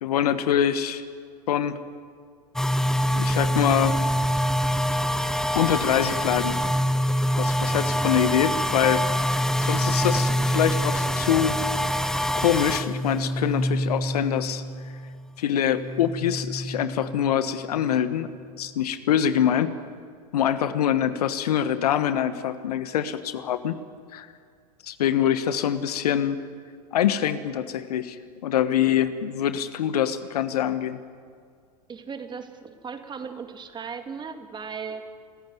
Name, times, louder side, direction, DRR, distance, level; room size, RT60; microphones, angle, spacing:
voice 1, 0.0-1.0 1.5-1.8 3.1-4.0 5.5-6.6 7.4-9.0 9.6-11.5 12.3-14.6 15.4-18.3 18.6-19.7 20.3-23.8 24.1-24.3 24.8-26.4 26.9-31.0, left 10 dB, 70° left, 12 dB, 1.3 m, -24 dB
sound 1, 2.6-15.3 15.6-18.0, equal, ahead, 0.8 m, -25 dB
voice 2, 31.9-35.1, right 6 dB, 20° right, 7 dB, 2.3 m, -37 dB
26.0 x 14.5 x 9.5 m, 2.1 s
hypercardioid pair, 95°, 20 cm